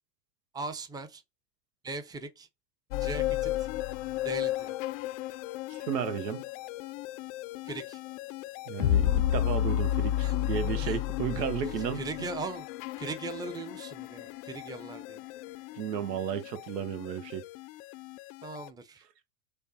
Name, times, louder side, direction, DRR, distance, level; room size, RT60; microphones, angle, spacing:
voice 1, 0.5-1.2 1.8-2.5 3.0-3.5 4.2-4.8 7.6-8.0 10.2-10.3 10.8-11.0 11.3-11.4 11.9-12.7 13.0-15.2 18.4-19.0, right 3 dB, 10° right, 0.6 m, -39 dB
sound 1, 2.9-18.7, left 13 dB, 55° left, 0.5 m, -33 dB
voice 2, 5.7-6.5 8.7-12.0 15.8-17.5, right 9 dB, 85° right, 0.9 m, -33 dB
6.4 x 2.2 x 2.9 m
hypercardioid pair, 90°, 48 cm